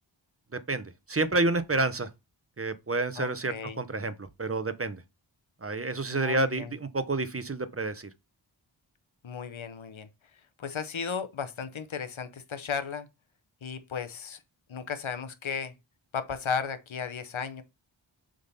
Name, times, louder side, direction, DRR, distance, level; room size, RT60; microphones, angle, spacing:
voice 1, 0.5-2.1 2.6-5.0 5.6-8.1, right 2 dB, 30° right, 0.9 m, -29 dB
voice 2, 3.2-3.8 6.1-6.7 9.2-10.1 10.6-13.1 13.6-14.4 14.7-15.7 16.1-17.6, left 6 dB, 75° left, 0.9 m, -35 dB
6.8 x 3.9 x 5.5 m
wide cardioid pair, 55°, 47 cm